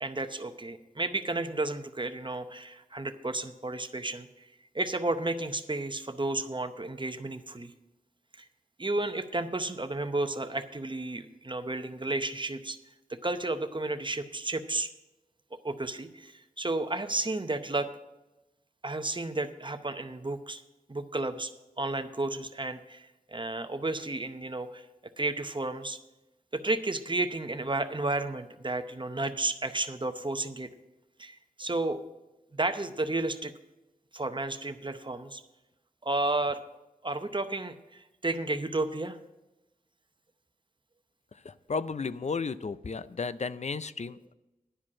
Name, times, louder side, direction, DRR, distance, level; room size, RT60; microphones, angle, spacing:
voice 1, 0.0-4.5 4.7-7.7 8.3-8.5 8.8-12.8 13.1-14.9 15.5-17.9 18.8-20.6 20.9-21.5 21.8-24.9 25.2-26.0 26.5-30.7 31.2-32.0 32.5-33.5 34.1-35.4 36.0-36.6 37.0-39.2, right 2 dB, 35° right, 9 dB, 0.7 m, -32 dB
voice 2, 41.5-44.3, left 4 dB, 50° left, 15 dB, 0.4 m, -34 dB
11.0 x 5.1 x 8.5 m, 0.99 s
wide cardioid pair, 65°, 15 cm